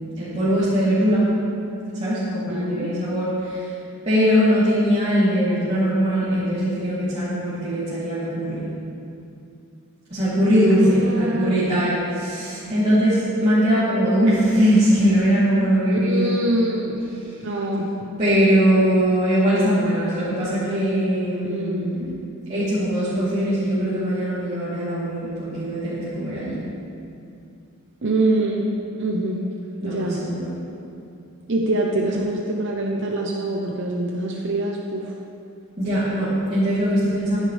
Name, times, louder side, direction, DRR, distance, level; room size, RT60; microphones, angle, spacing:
voice 1, 0.2-1.2 2.0-3.6 4.0-8.7 10.1-16.3 18.2-22.1 22.5-26.6 29.8-30.5 35.8-37.4, equal, 30° right, -15 dB, 3.2 m, -21 dB
voice 2, 2.5-2.9 10.7-11.7 15.9-17.0 17.4-17.9 21.4-21.9 28.0-28.7 29.0-29.4 29.8-30.2 31.5-35.1, right 1 dB, 55° right, -1 dB, 0.8 m, -24 dB
15.5 x 9.9 x 3.4 m, 2.6 s
head